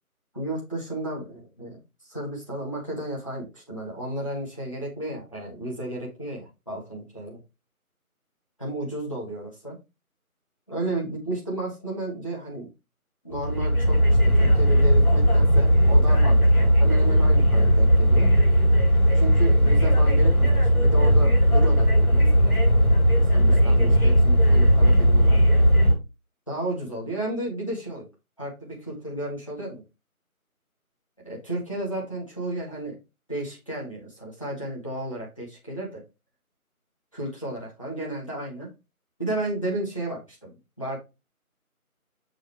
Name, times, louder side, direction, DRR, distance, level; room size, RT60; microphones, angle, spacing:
voice 1, 0.3-1.8 2.1-7.4 8.6-9.8 10.7-12.7 13.2-18.3 19.1-22.6 23.3-25.4 26.5-28.1 28.4-29.8 31.2-33.0 33.3-36.0 37.1-38.7 39.2-40.5 40.8-41.0, right 1 dB, 20° left, -4 dB, 1.4 m, -33 dB
sound 1, 13.3-25.9, equal, 80° left, 4.3 m, -18 dB
6.3 x 5.2 x 3.4 m, 0.25 s
figure-of-eight pair, 170°, 44 cm